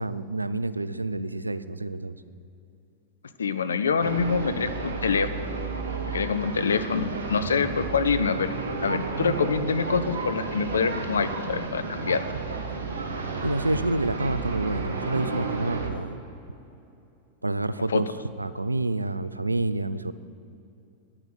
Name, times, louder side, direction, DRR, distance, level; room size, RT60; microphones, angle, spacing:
voice 1, 0.0-2.2 13.4-16.2 17.4-18.1 18.4-20.1, right 2 dB, 85° right, 16 dB, 0.4 m, -28 dB
voice 2, 3.4-5.3 6.1-8.5 8.8-12.2 17.9-18.0, left 5 dB, 70° left, 11 dB, 0.6 m, -25 dB
sound 1, 4.0-15.9, right 4 dB, 65° right, 1.2 m, -32 dB
9.9 x 8.7 x 8.1 m, 2.7 s
figure-of-eight pair, 90°, 0 cm